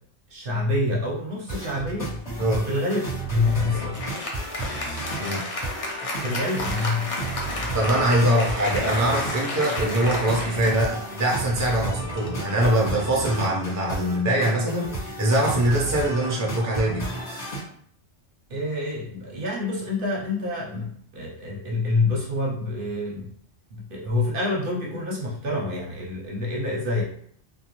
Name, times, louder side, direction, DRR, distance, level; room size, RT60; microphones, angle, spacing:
voice 1, 0.3-2.1 2.7-4.0 6.2-7.3 18.5-23.3 23.7-27.0, left 2 dB, 55° right, -3 dB, 0.8 m, -27 dB
sound 1, 1.5-17.6, right 2 dB, 35° left, 1.3 m, -33 dB
Applause, 3.4-13.2, left 2 dB, 50° left, 0.4 m, -32 dB
voice 2, 7.7-17.1, right 1 dB, 20° right, -3 dB, 0.4 m, -23 dB
2.4 x 2.2 x 2.9 m, 0.62 s
omnidirectional pair, 1.2 m